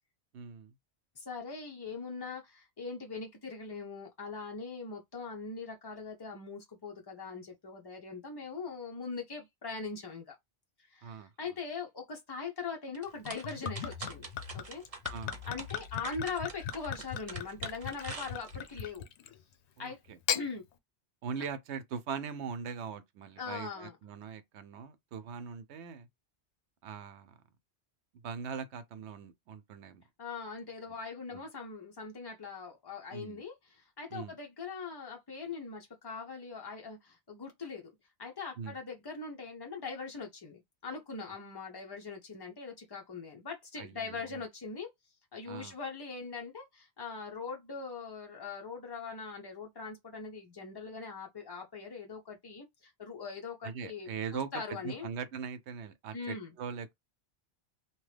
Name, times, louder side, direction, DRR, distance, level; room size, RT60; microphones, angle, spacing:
voice 1, 0.3-0.7 11.0-11.3 15.1-15.4 19.8-20.2 21.2-26.1 26.8-27.4 28.2-30.0 31.3-31.4 33.1-33.4 34.1-34.3 38.6-38.8 43.8-44.4 45.5-45.7 53.6-56.9, right 6 dB, 80° right, 0.9 m, -41 dB
voice 2, 1.2-10.4 10.9-14.3 14.5-14.8 15.4-19.1 19.8-20.0 20.3-20.6 23.4-24.0 30.2-37.9 38.2-44.9 45.3-55.1 56.1-56.5, left 4 dB, 40° left, 0.3 m, -41 dB
sound 1, 12.9-18.8, right 4 dB, 40° right, 0.7 m, -45 dB
Gurgling / Chink clink / Liquid, 13.3-19.4 20.1-20.5, left 8 dB, 80° left, 0.8 m, -38 dB
2.9 x 2.2 x 3.2 m
omnidirectional pair, 1.1 m